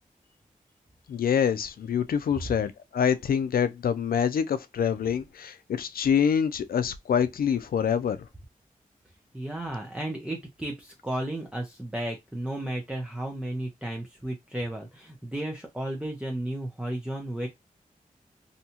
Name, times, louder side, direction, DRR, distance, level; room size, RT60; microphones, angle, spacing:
voice 1, 1.1-8.2, left 7 dB, 80° left, 0.4 m, -26 dB
voice 2, 9.3-17.5, right 1 dB, 5° right, 0.7 m, -33 dB
2.8 x 2.2 x 2.8 m
cardioid pair, 50°, 15 cm